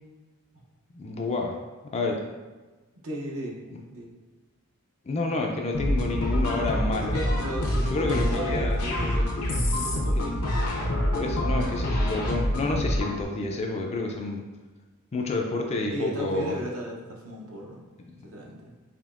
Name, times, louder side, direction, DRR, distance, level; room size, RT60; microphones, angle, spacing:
voice 1, 0.9-1.6 1.9-2.2 3.7-3.8 5.1-7.2 7.9-8.8 10.2-10.3 11.1-14.4 15.1-16.6, left 2 dB, 30° left, 1 dB, 0.4 m, -29 dB
voice 2, 3.0-3.6 3.9-4.1 7.0-10.9 15.9-17.8 18.2-18.7, right 1 dB, 70° right, -1 dB, 0.8 m, -35 dB
sound 1, 5.7-13.2, left 1 dB, 85° left, 0.8 m, -26 dB
5.0 x 2.8 x 2.4 m, 1.3 s
head